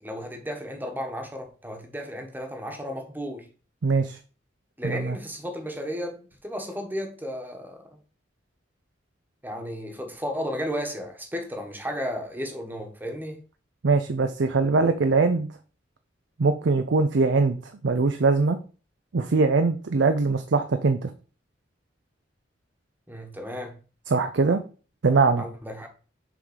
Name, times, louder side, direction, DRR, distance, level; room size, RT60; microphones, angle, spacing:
voice 1, 0.0-3.5 4.8-7.9 9.4-13.4 23.1-23.8 25.4-25.9, equal, 10° right, 1.2 m, -34 dB
voice 2, 3.8-4.2 4.8-5.2 13.8-15.5 16.4-18.6 19.1-21.1 24.1-24.6 25.0-25.4, right 4 dB, 80° right, 0.5 m, -22 dB
6.7 x 3.7 x 5.0 m
head